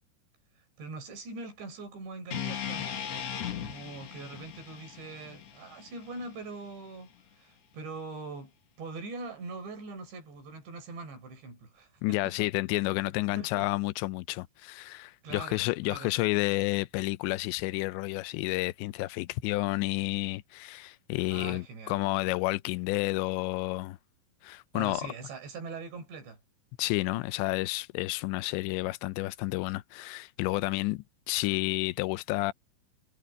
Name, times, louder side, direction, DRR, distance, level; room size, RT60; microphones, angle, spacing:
voice 1, 0.8-3.1 3.6-8.5 8.8-12.5 13.3-13.7 15.2-15.6 15.9-16.2 21.2-22.0 24.7-26.4, right 3 dB, 80° right, 6.9 m, -42 dB
sound 1, 2.3-6.5, left 8 dB, 55° left, 2.0 m, -38 dB
voice 2, 12.0-24.0 24.4-25.1 26.8-32.5, left 20 dB, 90° left, 2.9 m, -30 dB
omnidirectional pair, 5.0 m